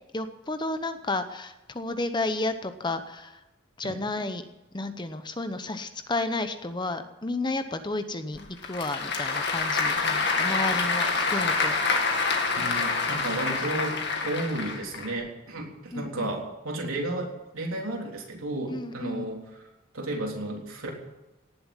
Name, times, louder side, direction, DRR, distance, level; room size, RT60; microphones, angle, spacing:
voice 1, 0.1-3.4 3.8-4.4 4.7-11.7 15.9-16.3 18.7-19.2, left 2 dB, 20° left, 9 dB, 0.8 m, -32 dB
Applause / Crowd, 8.4-15.1, left 4 dB, 55° left, 2.1 m, -27 dB
voice 2, 12.6-19.4 19.9-20.9, right 1 dB, 80° right, 0 dB, 3.6 m, -33 dB
18.0 x 7.7 x 9.8 m, 0.96 s
head